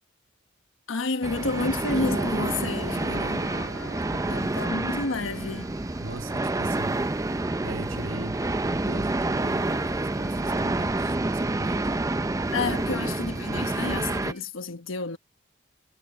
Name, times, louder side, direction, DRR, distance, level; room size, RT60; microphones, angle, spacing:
voice 1, 0.9-3.5 4.1-5.8 12.5-15.2, left 3 dB, 90° left, 1.2 m, -30 dB
sound 1, 1.2-14.3, right 2 dB, 15° right, 0.4 m, -28 dB
sound 2, 1.3-14.4, right 4 dB, 60° right, 2.8 m, -54 dB
sound 3, 2.0-13.4, left 3 dB, 65° left, 1.7 m, -47 dB
voice 2, 3.0-4.8 6.0-7.1 7.6-11.9, right 2 dB, 85° right, 1.2 m, -41 dB
head